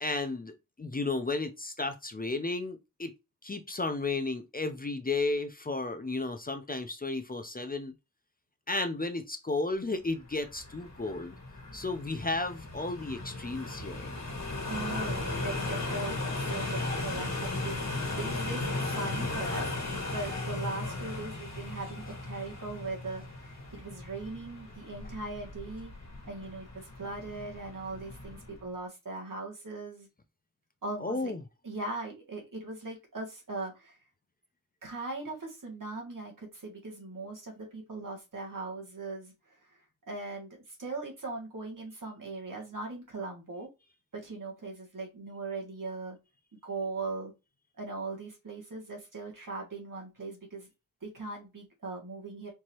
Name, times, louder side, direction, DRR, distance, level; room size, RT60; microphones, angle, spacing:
voice 1, 0.0-3.1 3.4-7.9 8.7-11.4 11.7-14.1 17.2-17.3 31.0-31.4, left 3 dB, 25° left, 0.6 m, -33 dB
sound 1, 10.3-28.6, left 2 dB, 55° left, 1.6 m, -36 dB
voice 2, 14.7-19.8 20.1-25.9 26.2-30.1 30.8-31.3 31.6-34.0 34.8-39.8 40.1-43.7 44.1-46.2 46.6-47.3 47.8-50.7 51.0-52.5, right 3 dB, 70° right, 2.1 m, -39 dB
4.6 x 2.8 x 3.0 m
wide cardioid pair, 70°, 33 cm